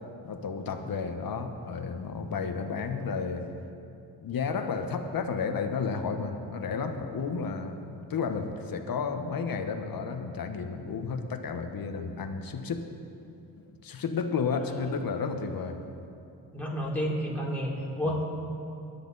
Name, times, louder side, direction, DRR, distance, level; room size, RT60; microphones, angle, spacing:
voice 1, 0.2-3.5 4.2-12.8 13.8-15.8 18.0-18.2, left 5 dB, 50° left, 6 dB, 1.4 m, -32 dB
voice 2, 16.5-18.3, equal, 5° left, -4 dB, 3.5 m, -30 dB
22.5 x 10.0 x 4.2 m, 2.6 s
cardioid pair, 90°, 43 cm